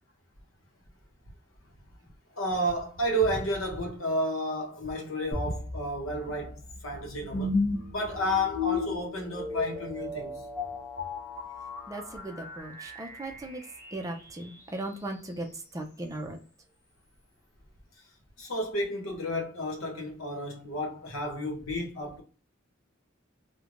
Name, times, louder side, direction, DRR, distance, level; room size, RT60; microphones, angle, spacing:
voice 1, 2.3-7.6 7.9-10.3 18.4-22.2, equal, 75° left, 0.9 m, -31 dB
sound 1, 5.3-14.4, left 3 dB, 15° left, 0.7 m, -35 dB
voice 2, 11.9-13.6 13.9-15.5 15.7-16.4, right 1 dB, 15° right, 0.4 m, -37 dB
3.2 x 2.1 x 2.4 m
head